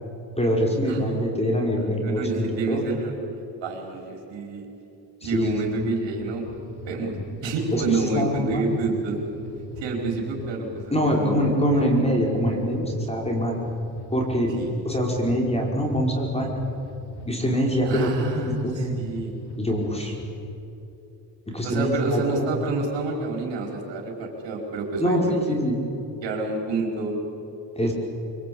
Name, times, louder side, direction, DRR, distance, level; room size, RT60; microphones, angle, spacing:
voice 1, 0.4-2.8 5.2-5.5 7.7-8.6 10.9-13.6 14.1-14.5 14.8-16.6 17.3-19.0 19.6-20.1 21.5-22.5 25.0-25.8 27.8-27.9, equal, 15° left, 0 dB, 5.2 m, -24 dB
voice 2, 2.0-3.1 3.6-4.6 5.2-6.4 6.8-7.1 7.4-9.2 9.8-12.1 14.6-14.7 17.8-19.3 21.6-25.5 26.2-27.2, right 3 dB, 80° right, 1 dB, 5.0 m, -28 dB
sound 1, 5.2-20.4, left 1 dB, 65° left, 3.4 m, -38 dB
25.0 x 24.5 x 8.7 m, 2.9 s
cardioid pair, 105°, 43 cm